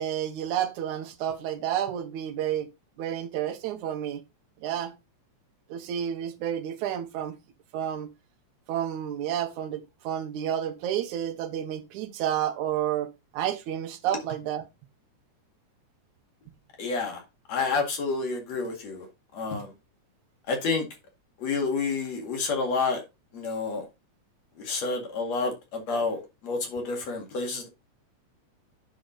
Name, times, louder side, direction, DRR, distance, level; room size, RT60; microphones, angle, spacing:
voice 1, 0.0-2.7 3.0-4.2 4.6-4.9 5.7-7.4 7.7-8.1 8.7-14.7, right 10 dB, 75° right, 2.3 m, -30 dB
voice 2, 16.8-17.2 17.5-19.1 19.3-19.7 20.5-20.9 21.4-23.0 23.3-23.8 24.6-27.7, left 4 dB, 60° left, 3.2 m, -29 dB
10.0 x 4.9 x 3.9 m
omnidirectional pair, 3.5 m